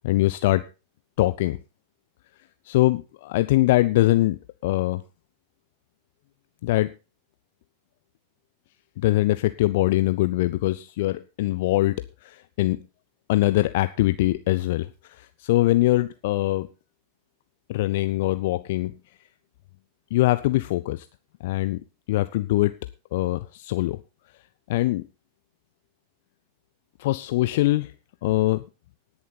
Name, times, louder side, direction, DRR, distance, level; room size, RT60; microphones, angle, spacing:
voice 1, 0.0-0.6 1.2-1.6 2.7-5.0 6.6-6.9 9.0-12.9 13.3-16.7 17.7-18.9 20.1-21.1 21.4-21.8 22.1-22.7 23.1-24.0 24.7-25.0 27.0-27.9 28.2-28.6, left 17 dB, 50° left, 13 dB, 0.5 m, -23 dB
19.0 x 7.1 x 4.1 m, 0.31 s
figure-of-eight pair, 90°, 0 cm